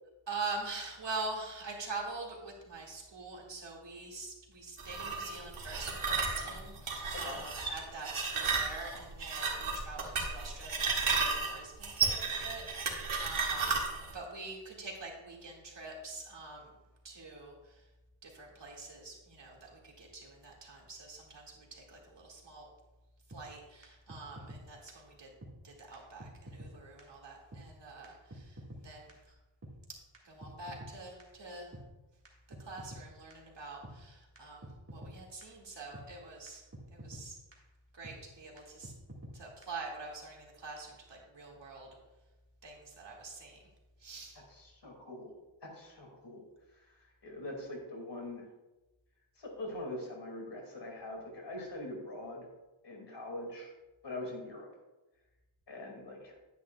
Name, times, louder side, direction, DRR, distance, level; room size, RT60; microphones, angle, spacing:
voice 1, 0.3-13.9 14.1-16.7 17.0-17.8 18.2-22.7 23.3-25.3 25.6-29.3 30.2-31.7 32.6-36.6 36.9-37.4 37.9-38.9 39.3-41.9 42.6-43.6 44.0-44.4, right 3 dB, 55° right, -1 dB, 2.1 m, -45 dB
sound 1, 4.8-14.1, right 4 dB, 75° right, 1.8 m, -33 dB
sound 2, 23.3-23.4 23.8-23.9 24.1-24.6 24.9-25.0 25.4-25.5 25.9-26.0 26.2-26.7 27.0-27.1 27.5-27.6 28.0-28.1 28.3-28.8 29.1-29.2 29.6-29.7 30.1-30.9 31.2-31.3 31.7-31.8 32.3-32.4 32.5-33.0 33.3-33.4 33.8-33.9 34.4-34.5 34.6-35.1 35.4-35.5 35.9-36.1 36.5-36.6 36.7-37.2 37.5-37.6 38.0-38.2 38.6-38.7 38.8-39.3 39.6-39.7, right 1 dB, 30° right, 1.7 m, -47 dB
voice 2, 44.5-45.3 45.6-46.4 46.7-48.5 49.4-52.5 52.8-53.7 54.0-54.7 55.7-56.4, left 1 dB, 55° left, 0 dB, 2.4 m, -43 dB
10.5 x 9.7 x 2.3 m, 1.1 s
wide cardioid pair, 110°, 49 cm